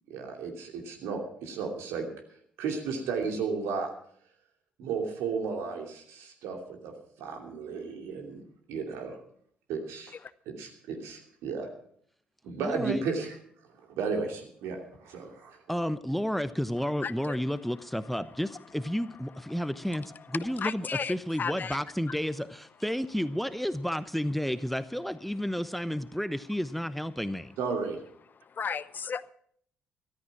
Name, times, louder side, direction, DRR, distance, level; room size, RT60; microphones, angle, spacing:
voice 1, 0.1-2.1 2.6-3.9 4.8-6.9 7.2-8.4 8.7-9.1 9.7-10.2 10.5-11.7 12.4-13.4 13.9-15.6 27.6-28.0, right 5 dB, 70° right, 3 dB, 2.8 m, -34 dB
voice 2, 12.6-13.0 15.7-27.5, equal, ahead, 13 dB, 0.9 m, -31 dB
voice 3, 17.0-17.4 20.6-21.8 22.1-22.2 28.6-29.3, left 6 dB, 45° left, 17 dB, 0.7 m, -34 dB
13.5 x 13.5 x 5.9 m, 0.63 s
hypercardioid pair, 45°, 5 cm